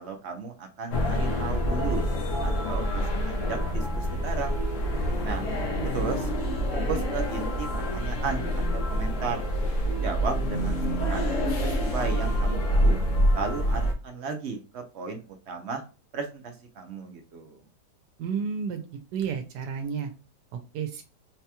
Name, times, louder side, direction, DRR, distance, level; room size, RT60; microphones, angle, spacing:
voice 1, 0.0-2.0 2.4-4.6 5.2-5.5 5.8-6.3 6.9-7.7 7.9-9.5 10.0-11.2 11.6-13.0 13.3-15.8 16.1-17.6, right 5 dB, 65° right, 5 dB, 0.7 m, -35 dB
sound 1, 0.9-13.9, equal, 55° left, 1.0 m, -26 dB
voice 2, 18.2-18.8 19.1-20.1 20.7-21.0, right 6 dB, 85° right, 6 dB, 1.2 m, -31 dB
4.0 x 2.9 x 2.2 m, 0.32 s
omnidirectional pair, 1.8 m